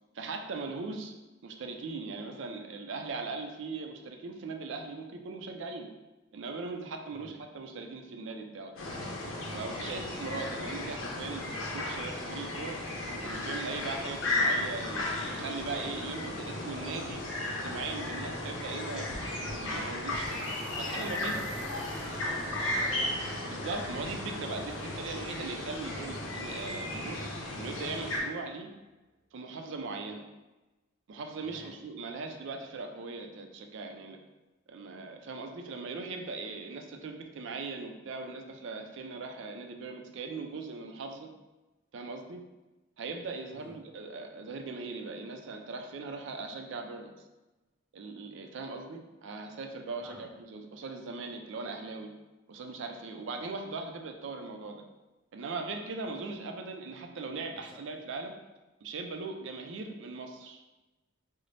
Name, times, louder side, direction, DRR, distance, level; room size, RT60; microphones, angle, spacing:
voice 1, 0.1-1.1 1.4-5.9 6.3-8.7 9.5-12.8 13.2-17.2 17.6-20.4 20.8-21.4 23.5-27.2 27.6-28.7 29.3-30.2 31.1-34.2 34.7-41.3 41.9-42.4 43.0-47.1 47.9-52.1 52.5-54.8 55.3-58.3 58.8-60.6, right 3 dB, 65° right, 4 dB, 0.4 m, -39 dB
sound 1, 8.8-28.2, left 2 dB, 85° left, 0.7 m, -35 dB
sound 2, 19.2-28.4, right 1 dB, 40° right, 0.7 m, -49 dB
voice 2, 20.6-23.1 29.9-30.2 31.4-31.8 43.5-43.8 50.0-50.3 57.6-57.8, equal, 5° right, -2 dB, 0.4 m, -48 dB
3.9 x 2.0 x 3.2 m, 1.1 s
head